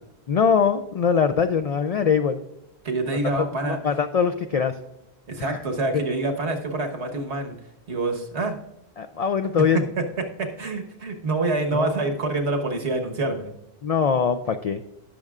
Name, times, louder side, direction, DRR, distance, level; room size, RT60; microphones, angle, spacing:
voice 1, 0.3-2.4 3.6-4.8 5.4-5.6 9.0-9.8 11.7-12.0 13.8-14.8, left 6 dB, 60° left, 8 dB, 0.4 m, -22 dB
voice 2, 2.8-3.8 5.3-7.6 7.9-8.6 10.2-13.5, right 2 dB, 80° right, 3 dB, 1.6 m, -26 dB
19.0 x 6.5 x 2.4 m, 0.84 s
omnidirectional pair, 1.1 m